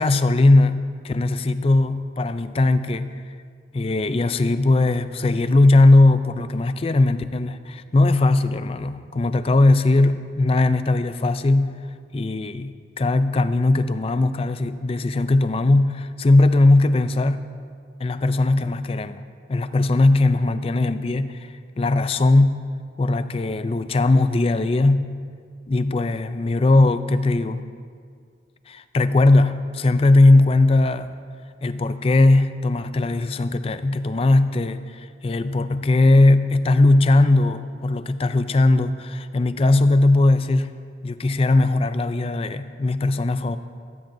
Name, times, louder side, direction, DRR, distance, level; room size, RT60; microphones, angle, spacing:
voice 1, 0.0-3.1 3.7-11.7 12.1-17.5 18.0-19.2 19.5-21.3 21.8-22.6 23.0-25.2 25.7-27.7 28.7-31.2 31.6-40.7 41.0-43.6, left 2 dB, 30° left, 12 dB, 0.4 m, -19 dB
15.0 x 15.0 x 2.7 m, 2.1 s
head